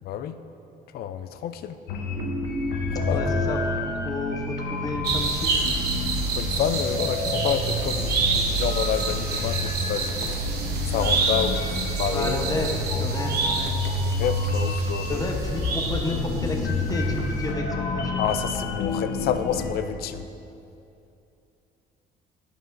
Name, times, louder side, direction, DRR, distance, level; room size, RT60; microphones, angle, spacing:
voice 1, 0.9-1.7 2.9-3.2 6.3-10.4 10.8-12.4 14.2-15.3 18.2-20.2, left 9 dB, 65° left, 10 dB, 0.4 m, -29 dB
sound 1, 1.9-19.7, left 2 dB, 85° left, 0.9 m, -28 dB
voice 2, 3.1-3.6 4.0-5.6 12.1-13.8 15.1-18.2, left 2 dB, 20° left, 1 dB, 0.9 m, -31 dB
sound 2, 5.0-16.7 17.0-17.1, right 4 dB, 70° right, 1.0 m, -29 dB
13.0 x 4.9 x 2.6 m, 2.7 s
cardioid pair, 110°, 17 cm